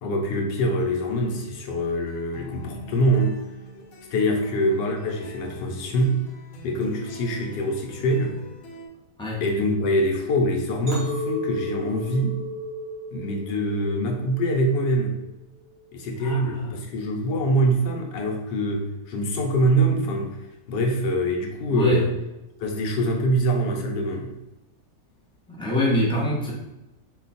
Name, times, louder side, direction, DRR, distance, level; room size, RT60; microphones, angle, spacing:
voice 1, 0.0-3.4 4.1-6.2 6.6-8.4 9.4-12.4 13.1-15.2 15.9-20.4 20.7-22.2 22.6-24.3, equal, 80° left, 2 dB, 1.4 m, -24 dB
sound 1, 0.8-8.9, left 1 dB, 60° left, 1.0 m, -44 dB
Chink clink, 10.9-15.2 15.7-16.1, equal, 45° right, 1.0 m, -35 dB
voice 2, 16.2-16.7 21.7-22.0 25.5-26.5, left 1 dB, 10° left, -5 dB, 0.3 m, -25 dB
4.6 x 2.3 x 4.1 m, 0.97 s
omnidirectional pair, 1.9 m